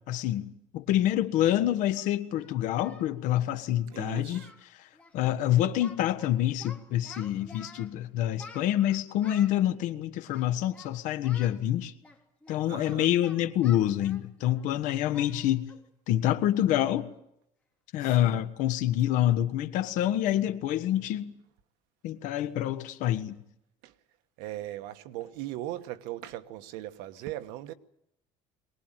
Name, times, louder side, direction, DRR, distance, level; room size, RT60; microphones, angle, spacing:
voice 1, 0.0-4.4 4.7-4.9 5.1-11.9 12.5-15.7 16.1-17.1 17.9-21.3 22.0-23.4, left 12 dB, 60° left, 1.5 m, -27 dB
Singing, 1.9-3.1 3.4-3.6 3.9-4.0 4.3-4.7 4.9-5.1 5.4-6.3 6.6-7.9 8.4-9.6 10.3-10.9 11.2-11.6 12.0-14.7 15.1-15.3 15.7-15.9 16.3-16.4 16.9-17.1, left 3 dB, 10° left, 3.2 m, -50 dB
voice 2, 3.9-4.5 12.7-13.1 18.0-18.4 23.8-23.9 24.4-27.7, right 14 dB, 85° right, 1.4 m, -39 dB
23.0 x 19.5 x 9.1 m
cardioid pair, 160°, 14 cm